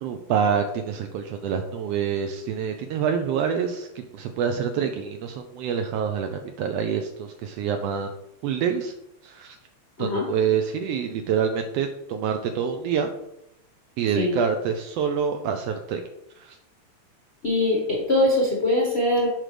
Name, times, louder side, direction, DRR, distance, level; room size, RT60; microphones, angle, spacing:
voice 1, 0.0-8.1 8.4-8.9 9.2-9.6 10.0-13.1 14.0-16.0 16.4-16.6, right 7 dB, 85° right, 5 dB, 1.4 m, -26 dB
voice 2, 10.0-10.3 14.2-14.4 17.4-19.3, left 1 dB, 55° left, -3 dB, 0.7 m, -22 dB
7.6 x 5.0 x 3.3 m, 0.82 s
omnidirectional pair, 3.3 m